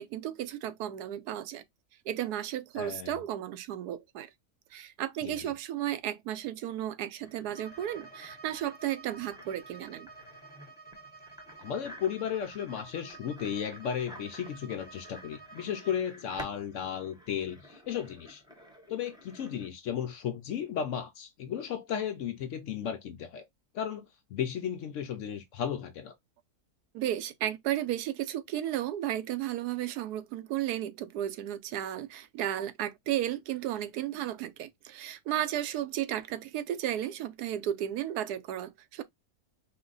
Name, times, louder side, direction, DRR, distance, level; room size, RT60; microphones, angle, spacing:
voice 1, 0.0-1.6 2.1-4.3 4.7-10.1 26.9-39.0, right 12 dB, 85° right, 1.1 m, -34 dB
voice 2, 2.8-3.2 5.2-5.5 11.6-18.4 18.9-23.5 23.7-26.1, left 8 dB, 65° left, 0.8 m, -35 dB
sound 1, 7.2-19.7, left 1 dB, 5° right, 0.8 m, -52 dB
Bowed string instrument, 7.5-16.1, right 4 dB, 10° left, 0.4 m, -51 dB
4.4 x 2.1 x 3.8 m
omnidirectional pair, 1.6 m